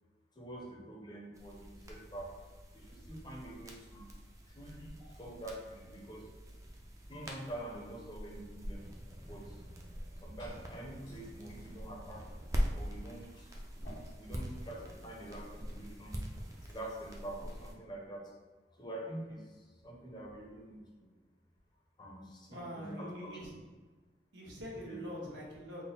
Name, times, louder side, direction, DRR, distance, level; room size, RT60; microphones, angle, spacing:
voice 1, 0.4-2.3 2.7-4.1 4.6-6.3 7.1-8.9 9.3-9.5 10.2-12.2 12.7-13.5 14.2-16.2 16.7-18.3 18.8-19.4 19.8-21.1 22.0-23.3 24.8-25.0, right 1 dB, 25° left, -1 dB, 0.6 m, -46 dB
sound 1, 1.3-17.7, equal, 20° right, 0.4 m, -43 dB
Liquid, 9.9-17.0, equal, 75° left, 1.4 m, -60 dB
voice 2, 22.5-23.5 24.3-25.8, equal, 80° right, -4 dB, 1.0 m, -44 dB
3.6 x 2.0 x 4.1 m, 1.4 s
head